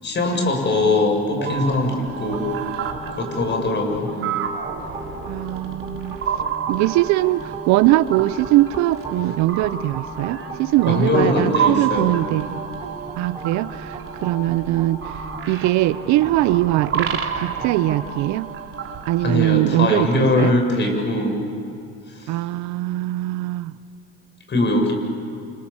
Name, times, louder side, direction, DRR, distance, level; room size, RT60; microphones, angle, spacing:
voice 1, 0.0-2.5 3.1-4.1 10.9-12.1 19.2-21.4 22.1-22.3 24.5-24.9, left 2 dB, 35° left, 3 dB, 7.7 m, -21 dB
sound 1, 1.4-19.3, right 7 dB, 45° right, 3.6 m, -30 dB
sound 2, 2.3-18.1, right 1 dB, 15° right, 5.0 m, -36 dB
voice 2, 4.1-4.6 5.3-6.2 6.7-12.6 13.2-15.0 15.5-18.5 19.1-20.5 22.3-23.7, right 16 dB, 70° right, 16 dB, 0.8 m, -21 dB
28.5 x 28.5 x 7.3 m, 2.6 s
supercardioid pair, 85°, 30 cm